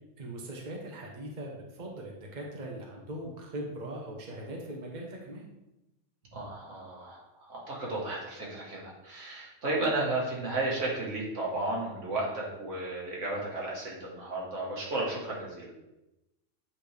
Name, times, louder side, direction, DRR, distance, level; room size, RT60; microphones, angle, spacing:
voice 1, 0.2-5.5, right 1 dB, 40° right, -1 dB, 1.1 m, -40 dB
voice 2, 6.3-15.7, right 2 dB, 75° right, -4 dB, 1.9 m, -33 dB
8.4 x 4.3 x 3.4 m, 0.96 s
omnidirectional pair, 1.3 m